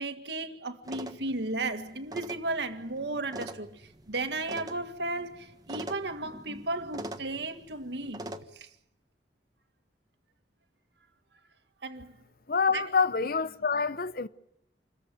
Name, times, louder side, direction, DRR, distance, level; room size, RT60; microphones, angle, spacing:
voice 1, 0.0-8.2 8.6-8.7 11.8-12.1 12.7-12.8, right 2 dB, 75° right, 1.9 m, -34 dB
sound 1, 0.8-8.4, right 1 dB, 20° right, 1.3 m, -44 dB
voice 2, 12.5-14.3, left 5 dB, 55° left, 0.8 m, -27 dB
27.5 x 14.5 x 9.4 m
head